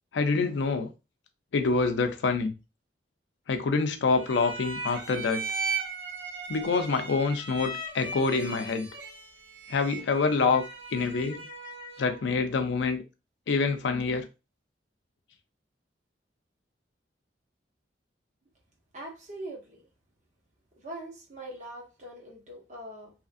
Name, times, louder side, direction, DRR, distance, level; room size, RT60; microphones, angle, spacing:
voice 1, 0.1-0.9 1.5-2.5 3.5-5.5 6.5-8.9 9.7-10.6 10.9-11.4 12.0-13.0 13.5-14.3, left 4 dB, 80° left, 0.4 m, -26 dB
sound 1, 4.1-12.2, right 4 dB, 70° right, 0.9 m, -37 dB
voice 2, 18.9-19.8 20.8-23.1, right 1 dB, 40° right, 0.8 m, -42 dB
2.8 x 2.5 x 2.4 m
head